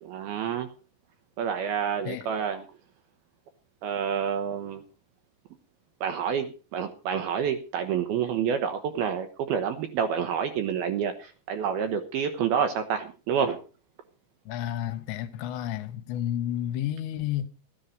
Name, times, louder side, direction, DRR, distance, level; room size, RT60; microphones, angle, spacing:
voice 1, 0.0-0.7 1.4-2.6 3.8-4.8 6.0-13.6, right 7 dB, 70° right, 2.4 m, -28 dB
voice 2, 14.5-17.5, left 11 dB, 75° left, 3.1 m, -31 dB
13.5 x 10.0 x 5.2 m
omnidirectional pair, 5.3 m